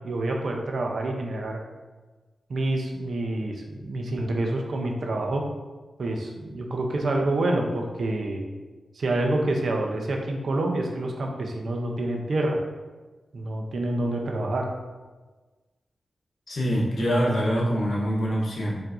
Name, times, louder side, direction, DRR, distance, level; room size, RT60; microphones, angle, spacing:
voice 1, 0.0-1.6 2.5-5.4 6.0-8.4 8.9-12.6 13.3-14.7, right 2 dB, 70° right, 1 dB, 0.5 m, -27 dB
voice 2, 16.5-18.8, equal, 70° left, -5 dB, 0.8 m, -24 dB
4.6 x 2.6 x 2.5 m, 1.3 s
cardioid pair, 70°, 0 cm